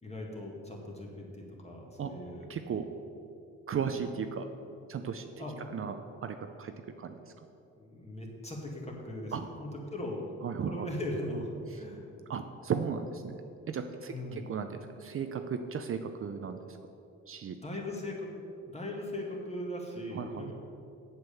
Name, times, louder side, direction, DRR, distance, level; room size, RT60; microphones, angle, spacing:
voice 1, 0.0-2.5 5.4-5.8 7.8-10.2 10.6-12.1 14.1-14.5 17.6-18.3 18.7-20.5, left 1 dB, 20° left, -1 dB, 2.1 m, -39 dB
voice 2, 2.5-2.9 3.7-4.5 4.9-5.3 5.7-6.0 6.2-7.1 9.3-9.5 10.4-10.9 12.3-13.4 13.7-16.8 17.3-17.6 20.1-20.5, right 6 dB, 45° right, 7 dB, 0.6 m, -35 dB
7.9 x 7.5 x 6.9 m, 2.7 s
cardioid pair, 90°, 30 cm